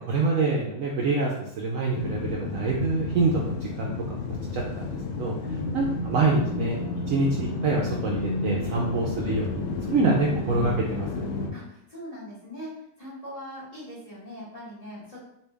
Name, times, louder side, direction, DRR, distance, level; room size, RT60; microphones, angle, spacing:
voice 1, 0.1-4.2 4.5-5.3 5.7-6.8 7.1-9.6 9.9-11.1, right 3 dB, 70° right, -2 dB, 0.8 m, -26 dB
sound 1, 1.9-11.5, left 3 dB, 70° left, 0.8 m, -31 dB
voice 2, 5.4-5.8 11.5-15.2, equal, 30° left, -8 dB, 0.9 m, -41 dB
3.2 x 2.7 x 3.3 m, 0.78 s
omnidirectional pair, 1.7 m